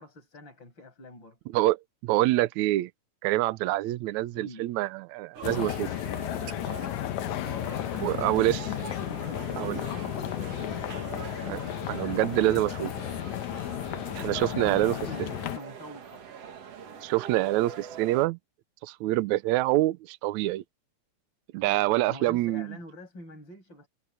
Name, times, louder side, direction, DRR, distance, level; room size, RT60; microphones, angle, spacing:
voice 1, 0.0-1.4 4.3-4.7 7.4-11.1 14.5-16.3 22.1-23.9, left 1 dB, 40° left, 7.9 m, -46 dB
voice 2, 1.5-2.9 3.2-5.9 8.0-8.7 9.6-9.8 11.5-11.6 11.9-12.9 14.1-15.0 17.0-18.4 18.8-20.6 21.5-22.7, right 17 dB, 80° right, 2.0 m, -26 dB
sound 1, 5.3-18.3, right 7 dB, 60° right, 2.8 m, -43 dB
sound 2, 5.4-15.6, left 14 dB, 80° left, 2.1 m, -34 dB
omnidirectional pair, 3.4 m